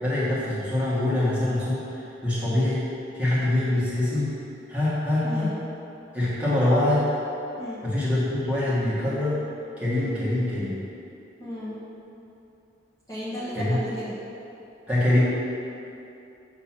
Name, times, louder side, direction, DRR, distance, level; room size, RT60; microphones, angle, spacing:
voice 1, 0.0-2.8 3.1-4.3 4.7-5.5 6.1-7.0 7.8-9.4 9.8-10.8 13.5-13.8 14.9-15.2, left 1 dB, 5° right, -10 dB, 1.4 m, -24 dB
voice 2, 11.4-11.9 13.1-14.2, equal, 15° left, -11 dB, 1.1 m, -34 dB
7.1 x 3.0 x 5.8 m, 2.8 s
head